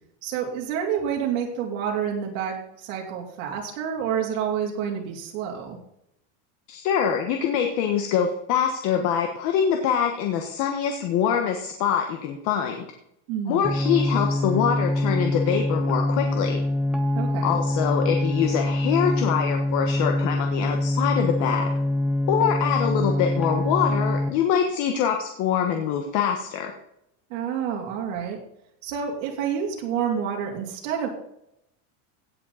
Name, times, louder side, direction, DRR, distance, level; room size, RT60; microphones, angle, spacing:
voice 1, 0.2-5.8 13.3-13.7 17.1-17.6 27.3-28.4 28.8-31.1, right 8 dB, 75° right, -2 dB, 3.0 m, -28 dB
voice 2, 6.7-12.9 13.5-16.6 17.4-21.7 22.3-26.7, left 8 dB, 50° left, 4 dB, 1.4 m, -24 dB
sound 1, 13.6-24.3, left 1 dB, ahead, 0.7 m, -25 dB
17.0 x 7.6 x 4.2 m, 0.78 s
cardioid pair, 165°, 38 cm